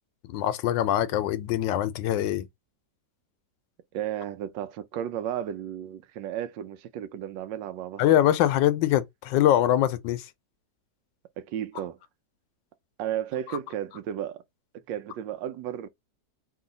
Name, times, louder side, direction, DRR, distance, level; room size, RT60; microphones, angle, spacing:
voice 1, 0.3-2.5 8.0-10.2, left 12 dB, 90° left, 1.3 m, -23 dB
voice 2, 3.9-8.1 11.4-12.0 13.0-14.4 14.9-15.9, right 10 dB, 90° right, 1.3 m, -33 dB
3.1 x 2.7 x 3.8 m
omnidirectional pair, 1.9 m